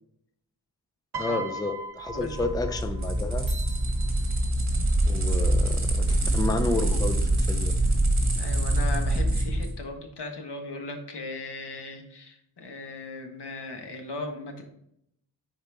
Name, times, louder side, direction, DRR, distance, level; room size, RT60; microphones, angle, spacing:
Piano, 1.1-3.5 4.5-4.8, right 2 dB, 70° right, 0.9 m, -38 dB
voice 1, 1.2-3.5 5.0-7.7, left 3 dB, 10° left, 7 dB, 0.5 m, -31 dB
voice 2, 2.1-2.5 5.2-5.4 8.4-14.6, left 2 dB, 80° left, 3 dB, 1.4 m, -38 dB
sound 1, 2.1-9.7, right 1 dB, 45° right, 1.8 m, -25 dB
sound 2, 3.5-6.1, right 5 dB, 25° right, 2.5 m, -47 dB
10.0 x 4.3 x 3.5 m, 0.75 s
wide cardioid pair, 140°, 40 cm